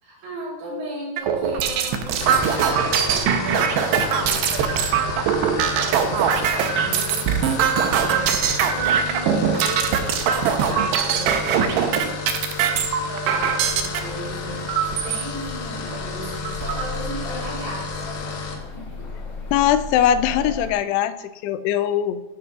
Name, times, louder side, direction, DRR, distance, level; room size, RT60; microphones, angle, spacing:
voice 1, 0.0-12.2 13.0-18.2 18.7-19.1, right 2 dB, 70° right, -7 dB, 5.6 m, -36 dB
sound 1, 1.2-14.0 14.7-15.2 15.8-15.9 16.2-16.8, right 7 dB, 90° right, 2.9 m, -21 dB
sound 2, 2.2-18.6, left 5 dB, 75° left, 1.4 m, -32 dB
sound 3, 13.6-20.7, left 3 dB, 55° left, 1.8 m, -36 dB
voice 2, 19.5-22.2, left 10 dB, 90° left, 10 dB, 2.7 m, -21 dB
15.5 x 8.9 x 2.5 m, 1.0 s
omnidirectional pair, 4.6 m